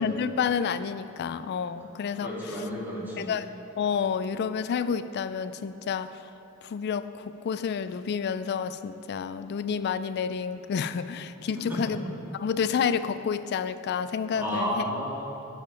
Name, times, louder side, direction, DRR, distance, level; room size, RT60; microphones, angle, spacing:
voice 1, 0.0-2.3 3.2-3.5 3.8-6.2 6.6-12.0 12.3-14.8, left 6 dB, 50° left, 12 dB, 0.3 m, -29 dB
voice 2, 2.1-3.3 11.5-11.9 14.3-15.5, equal, 10° right, -6 dB, 1.9 m, -32 dB
8.9 x 7.3 x 5.1 m, 3.0 s
head